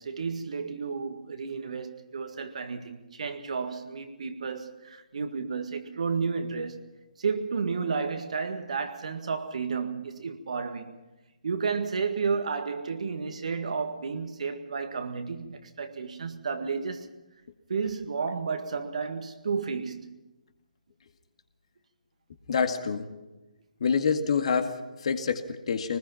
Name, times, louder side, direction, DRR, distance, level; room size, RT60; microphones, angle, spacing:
voice 1, 0.0-6.8 7.2-10.9 11.4-17.1 17.7-20.2, right 5 dB, 55° right, 1.8 m, -32 dB
voice 2, 22.5-23.1 23.8-26.0, left 6 dB, 50° left, 2.0 m, -27 dB
23.0 x 20.0 x 5.8 m
figure-of-eight pair, 140°, 4 cm